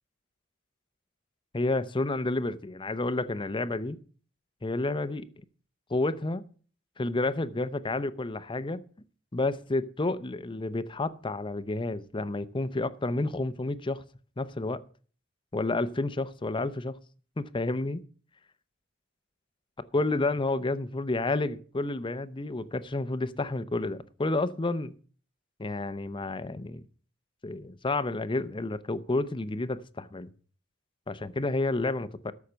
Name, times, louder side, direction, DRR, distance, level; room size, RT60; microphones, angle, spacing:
voice 1, 1.5-4.0 4.6-5.3 5.9-6.4 7.0-8.8 9.3-14.0 14.4-14.8 15.5-17.0 17.4-18.0 19.9-24.9 25.6-26.8 27.4-30.3 31.1-32.3, left 2 dB, 25° left, 0.6 m, -30 dB
13.0 x 6.4 x 6.8 m
head